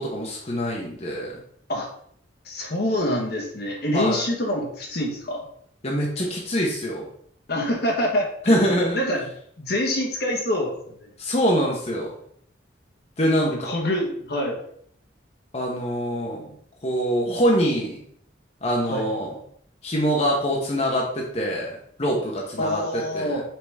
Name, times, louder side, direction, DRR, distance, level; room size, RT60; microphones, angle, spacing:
voice 1, 0.0-1.3 3.9-4.2 5.8-7.1 8.4-9.0 11.2-12.1 13.2-13.5 15.5-16.4 16.8-18.0 18.6-19.3 19.8-23.4, equal, 35° left, -2 dB, 1.1 m, -24 dB
voice 2, 2.4-5.5 7.5-9.3 9.6-11.1 13.5-14.6 18.9-19.0 22.6-23.4, left 1 dB, 55° left, 1 dB, 1.4 m, -26 dB
5.9 x 4.9 x 3.5 m, 0.64 s
head